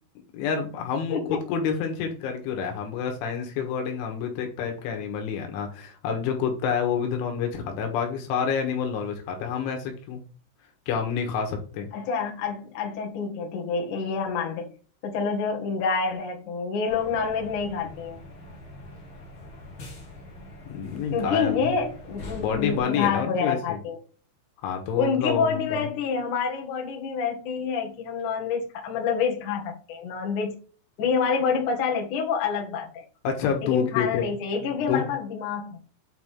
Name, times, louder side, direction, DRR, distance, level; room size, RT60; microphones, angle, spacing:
voice 1, 0.3-10.2 10.9-11.9 20.7-21.7 22.3-23.8 24.6-25.9 33.3-34.3 34.8-35.1, left 6 dB, 75° left, 3 dB, 3.7 m, -28 dB
voice 2, 1.1-1.4 11.9-14.7 15.0-18.2 21.1-24.0 25.0-30.5 31.0-33.0 33.6-35.8, left 5 dB, 55° left, 0 dB, 2.3 m, -27 dB
sound 1, 16.9-22.8, left 2 dB, 35° left, 2.2 m, -43 dB
8.6 x 4.8 x 3.6 m, 0.39 s
omnidirectional pair, 5.7 m